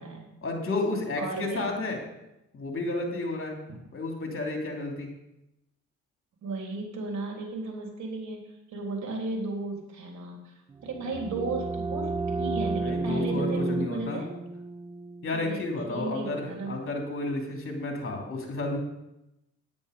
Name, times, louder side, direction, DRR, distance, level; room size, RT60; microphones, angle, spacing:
voice 1, 0.4-2.0 2.5-3.6 3.9-5.1 12.8-14.2 15.2-18.8, left 2 dB, 45° left, 1 dB, 2.8 m, -31 dB
voice 2, 1.2-1.7 3.7-3.8 6.4-12.1 12.4-14.3 15.3-15.6 15.9-16.8, right 3 dB, 65° right, 0 dB, 3.4 m, -35 dB
sound 1, 10.8-16.4, right 3 dB, 15° right, 0.4 m, -32 dB
9.6 x 9.6 x 5.1 m, 0.90 s
cardioid pair, 90°, 30 cm